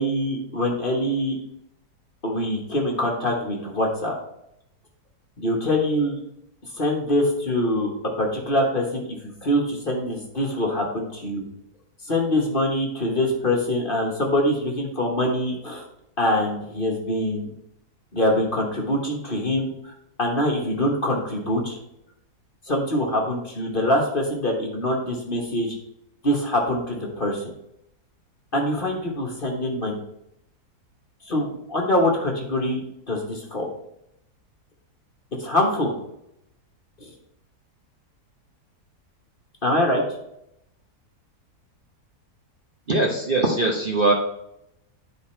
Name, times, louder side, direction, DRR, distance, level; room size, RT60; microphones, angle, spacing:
voice 1, 0.0-1.4 2.2-4.1 5.4-6.2 6.8-11.4 12.1-15.8 16.2-17.5 18.1-19.9 20.2-21.8 22.7-25.8 26.2-27.4 28.5-30.0 31.2-32.8 33.1-33.7 35.4-35.9 37.0-37.1 39.6-40.0, left 1 dB, 35° left, -1 dB, 1.5 m, -24 dB
voice 2, 42.9-44.1, right 2 dB, 35° right, -1 dB, 1.1 m, -21 dB
10.5 x 4.2 x 4.4 m, 0.81 s
omnidirectional pair, 1.8 m